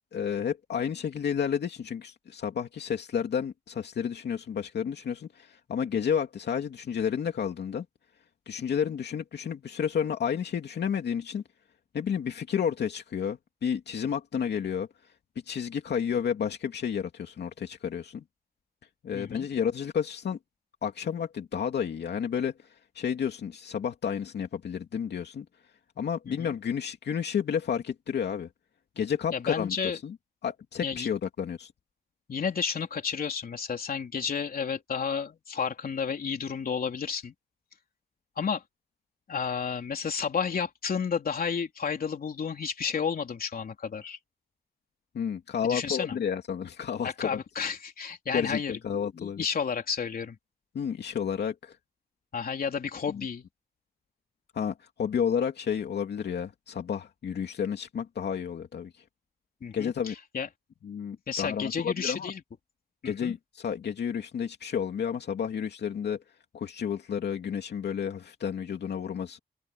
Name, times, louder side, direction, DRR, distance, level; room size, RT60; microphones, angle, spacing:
voice 1, 0.1-7.8 8.5-11.4 11.9-14.9 15.5-18.2 19.0-20.4 20.8-22.5 22.9-25.5 26.0-28.5 29.0-29.8 30.0-30.2 30.4-31.7 45.1-47.4 48.3-49.4 50.7-51.8 53.1-53.2 54.5-59.0 59.7-60.1 60.8-62.3 63.0-66.2 66.5-69.4, left 7 dB, 85° left, 2.6 m, -31 dB
voice 2, 19.1-19.5 26.3-26.5 29.3-30.0 30.8-31.1 32.3-37.3 38.4-38.6 39.3-44.2 45.6-46.2 47.0-48.7 49.1-50.4 52.3-53.4 59.6-60.5 61.3-62.4 63.0-63.3, left 6 dB, 60° left, 3.7 m, -31 dB
open air
wide cardioid pair, 115°, 17 cm